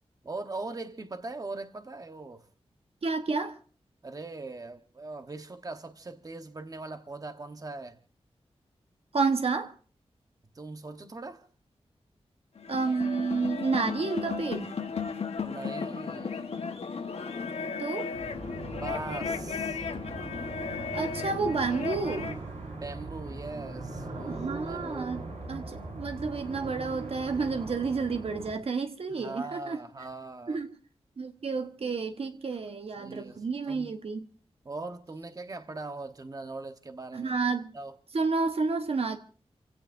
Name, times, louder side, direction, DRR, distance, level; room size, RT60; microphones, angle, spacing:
voice 1, 0.2-2.4 4.0-8.0 10.5-11.4 15.4-16.4 18.7-19.8 22.7-25.3 29.1-30.6 32.5-32.6 33.0-33.9 34.6-37.3 37.7-37.9, right 3 dB, 35° right, 1.0 m, -40 dB
voice 2, 3.0-3.6 9.1-9.7 12.7-14.7 17.8-18.1 20.9-22.3 24.2-25.2 25.5-29.8 30.5-30.8 31.2-34.3 37.1-37.7 38.1-39.2, right 4 dB, 60° right, 1.1 m, -30 dB
sound 1, 12.6-22.4, left 5 dB, 70° left, 1.2 m, -35 dB
sound 2, 18.1-28.5, right 2 dB, 85° right, 5.2 m, -40 dB
30.0 x 16.5 x 2.6 m
wide cardioid pair, 95°, 11 cm